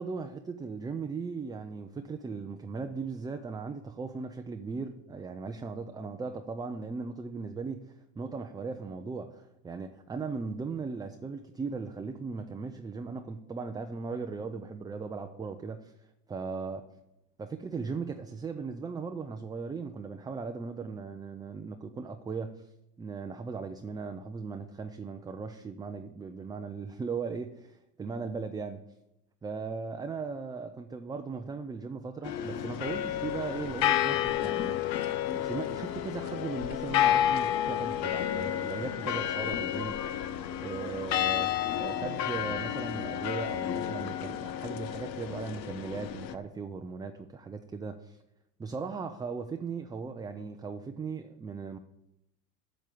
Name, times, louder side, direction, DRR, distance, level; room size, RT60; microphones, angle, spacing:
voice 1, 0.0-15.9 16.3-16.8 17.4-22.6 23.0-28.8 29.4-34.8 35.3-40.0 40.6-48.2 48.6-51.8, right 4 dB, 10° right, 5 dB, 0.3 m, -38 dB
sound 1, 32.2-46.3, left 11 dB, 85° left, 0.8 m, -31 dB
8.1 x 7.1 x 7.5 m, 0.86 s
hypercardioid pair, 85°, 49 cm